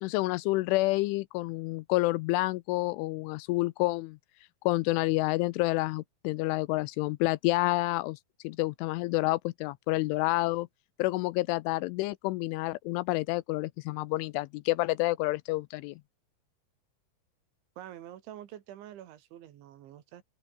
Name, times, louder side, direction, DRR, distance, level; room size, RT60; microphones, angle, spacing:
voice 1, 0.0-4.2 4.7-8.2 8.4-10.7 11.0-16.0, left 20 dB, 80° left, 2.9 m, -29 dB
voice 2, 17.8-20.2, right 12 dB, 70° right, 4.2 m, -46 dB
open air
omnidirectional pair, 5.8 m